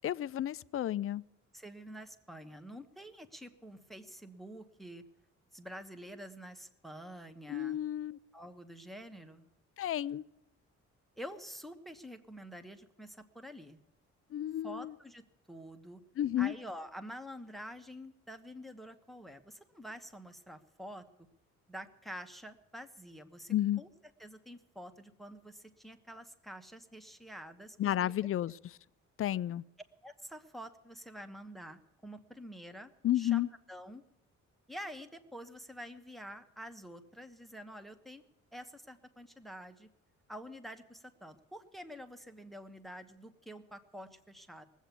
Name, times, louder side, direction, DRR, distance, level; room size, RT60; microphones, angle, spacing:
voice 1, 0.0-1.2 7.5-8.2 9.8-10.2 14.3-14.9 16.2-16.5 23.5-23.8 27.8-28.6 29.2-29.6 33.0-33.5, left 12 dB, 45° left, 0.5 m, -32 dB
voice 2, 1.5-5.0 5.5-7.8 8.3-9.5 11.2-13.8 14.6-15.2 15.5-16.0 16.4-21.1 21.7-23.9 24.2-28.1 28.4-28.5 30.0-33.4 33.7-34.0 34.7-38.2 38.5-39.9 40.3-44.7, equal, ahead, 1.2 m, -48 dB
19.0 x 8.2 x 8.4 m
cardioid pair, 90°, 30 cm